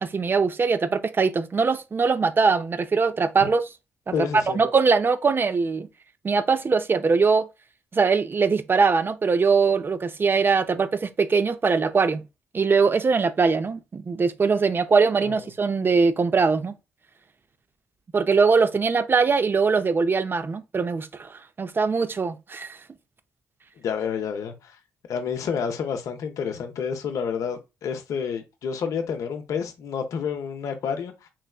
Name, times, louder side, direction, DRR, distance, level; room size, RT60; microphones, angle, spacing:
voice 1, 0.0-3.6 4.2-5.9 6.2-7.5 7.9-12.2 12.5-16.7 18.1-22.8, right 4 dB, 35° right, 0.6 m, -22 dB
voice 2, 4.1-4.6 15.2-15.4 23.8-24.8 25.1-31.3, left 6 dB, 65° left, 0.7 m, -29 dB
4.0 x 3.1 x 2.3 m
hypercardioid pair, 50°, 6 cm